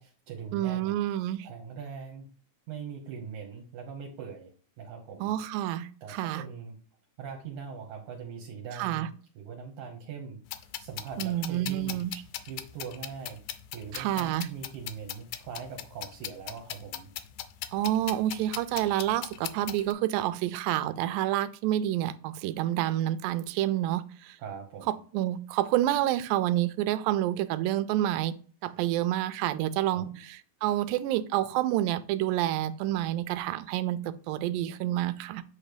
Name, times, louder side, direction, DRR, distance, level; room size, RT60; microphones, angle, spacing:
voice 1, 0.0-0.9 1.4-2.3 2.7-4.5 4.8-5.3 6.0-6.8 7.2-9.1 9.4-10.4 10.8-12.0 12.5-13.4 13.7-17.1 24.4-25.0 29.9-30.2, right 6 dB, 65° right, 2.2 m, -41 dB
voice 2, 0.5-1.5 5.2-6.4 8.7-9.1 11.2-12.2 13.9-14.5 17.7-24.4 24.9-28.4 28.6-35.4, right 13 dB, 90° right, 2.3 m, -28 dB
sound 1, 10.5-19.9, left 12 dB, 80° left, 2.0 m, -40 dB
8.5 x 3.2 x 5.0 m
omnidirectional pair, 4.0 m